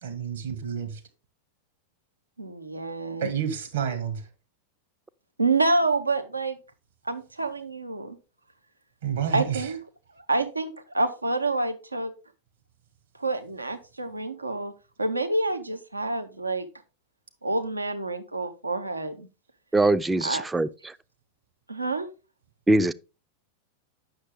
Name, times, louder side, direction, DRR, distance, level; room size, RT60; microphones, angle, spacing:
voice 1, 0.0-1.0 3.2-4.2 9.0-9.7, right 8 dB, 65° right, 1.9 m, -29 dB
voice 2, 2.4-3.3 5.4-6.6 7.1-8.2 9.3-9.8 10.2-12.1 13.2-14.7 15.0-16.7 17.4-19.3 20.2-20.4 21.7-22.1, right 2 dB, 85° right, 0.8 m, -27 dB
voice 3, 19.7-20.9 22.7-22.9, right 2 dB, 10° right, 0.4 m, -22 dB
8.8 x 6.5 x 3.6 m
figure-of-eight pair, 90°, 0 cm